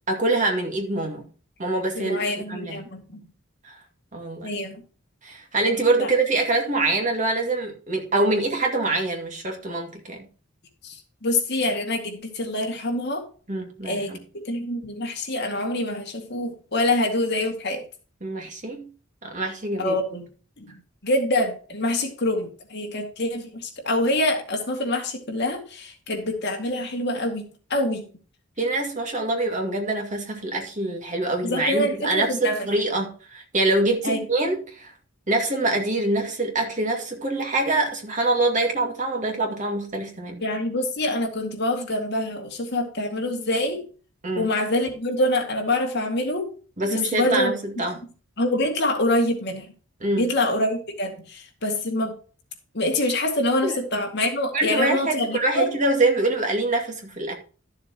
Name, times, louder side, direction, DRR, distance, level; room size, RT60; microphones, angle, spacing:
voice 1, 0.1-1.3 1.6-2.2 2.5-2.8 3.6-3.8 4.1-4.5 5.2-10.3 13.5-14.2 18.2-18.9 19.2-20.0 28.6-34.9 35.3-40.4 44.2-44.4 46.8-48.0 50.0-50.3 53.6-53.8 54.5-57.4, right 2 dB, 35° right, 2.2 m, -25 dB
voice 2, 2.0-3.2 4.4-4.8 6.0-6.1 10.8-13.2 13.9-17.8 19.8-20.3 20.6-20.7 21.0-28.1 31.4-32.7 34.0-34.2 40.4-43.8 44.4-46.5 46.9-47.5 48.4-49.7 50.2-52.2 52.7-55.7, left 1 dB, 50° left, 2.2 m, -25 dB
13.0 x 7.2 x 3.0 m
head